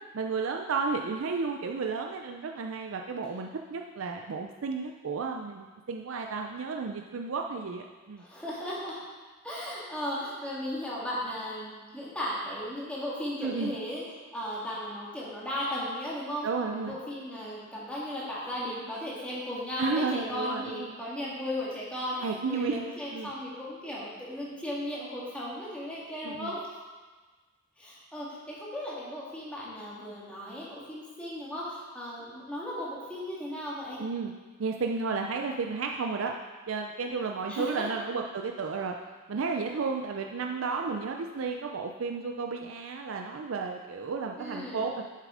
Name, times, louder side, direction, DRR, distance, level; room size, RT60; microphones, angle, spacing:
voice 1, 0.1-8.2 13.4-13.7 16.4-17.0 19.8-21.0 22.2-22.8 23.1-23.3 26.2-26.6 34.0-34.3 34.6-36.3 36.7-39.0 39.3-45.0, right 4 dB, 85° right, 3 dB, 0.5 m, -32 dB
voice 2, 8.2-9.0 9.4-14.0 14.3-26.6 27.8-34.0 37.5-38.0 44.4-44.8, left 1 dB, 5° left, -7 dB, 2.1 m, -36 dB
7.5 x 6.7 x 4.9 m, 1.3 s
head